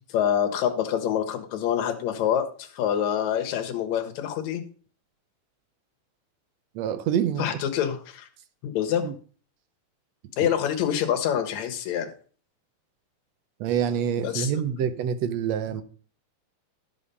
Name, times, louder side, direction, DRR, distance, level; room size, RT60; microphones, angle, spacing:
voice 1, 0.1-4.6 7.4-8.3 8.6-9.1 10.4-12.1 14.2-14.6, left 9 dB, 70° left, 6 dB, 2.4 m, -26 dB
voice 2, 6.8-7.5 9.0-9.1 13.6-15.8, right 8 dB, 70° right, 11 dB, 1.9 m, -26 dB
12.0 x 5.6 x 5.3 m, 0.41 s
omnidirectional pair, 3.4 m